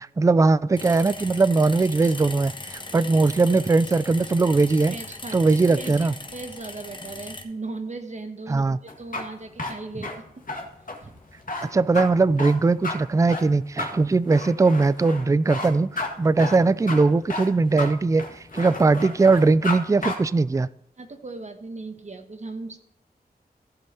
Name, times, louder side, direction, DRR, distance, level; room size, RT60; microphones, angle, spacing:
voice 1, 0.0-4.9 5.3-6.1 8.5-8.8 11.7-18.2 18.5-20.7, right 3 dB, 20° right, 18 dB, 0.3 m, -20 dB
sound 1, 0.8-7.4, left 2 dB, 30° left, 1.2 m, -38 dB
voice 2, 4.9-5.4 5.7-10.2 11.0-11.1 21.0-22.8, right 3 dB, 45° right, 7 dB, 1.3 m, -37 dB
sound 2, 8.9-19.8 20.0-20.2, left 2 dB, 55° left, 1.9 m, -32 dB
15.0 x 5.4 x 4.3 m, 0.73 s
wide cardioid pair, 90°, 16 cm